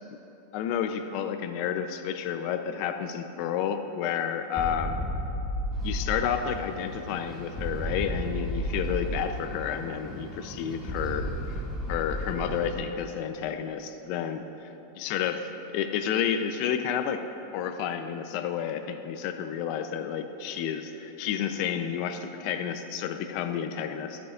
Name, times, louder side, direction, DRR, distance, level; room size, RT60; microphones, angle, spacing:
voice 1, 0.5-5.0 5.8-11.6 11.9-14.4 15.0-17.3 17.5-24.2, left 8 dB, 55° left, 8 dB, 0.7 m, -30 dB
sound 1, 4.6-6.9 7.6-9.9 10.9-13.1, equal, 20° left, 1.5 m, -33 dB
sound 2, 5.7-12.7, equal, ahead, 3.0 m, -42 dB
16.5 x 14.0 x 2.6 m, 3.0 s
supercardioid pair, 130°, 0 cm